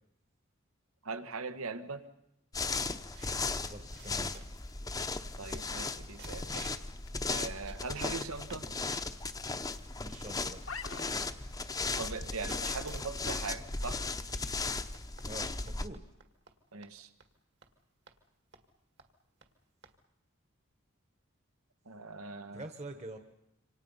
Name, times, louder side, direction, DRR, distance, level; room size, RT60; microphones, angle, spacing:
voice 1, 1.0-2.1 5.4-6.7 7.3-8.7 12.0-14.0 16.7-17.1 21.8-22.6, right 4 dB, 85° right, 9 dB, 1.5 m, -40 dB
sound 1, 2.5-15.9, left 3 dB, 15° left, 0.8 m, -36 dB
sound 2, 3.1-4.7 5.2-5.3 5.5-5.9 6.2-6.9 7.3-8.6 8.9-9.5 10.1-10.2 10.4-13.2 13.8-16.6 16.8-16.9 17.2-17.3 17.6-17.7 18.1-18.2 18.5-18.7 19.0-19.1 19.4-19.5 19.8-20.0, right 6 dB, 55° right, 1.9 m, -56 dB
voice 2, 3.6-4.4 10.0-10.6 15.2-16.0 22.5-23.2, right 1 dB, 30° right, 7 dB, 1.3 m, -45 dB
sound 3, 3.9-13.8, left 5 dB, 75° left, 1.3 m, -53 dB
27.5 x 25.5 x 5.6 m, 0.85 s
head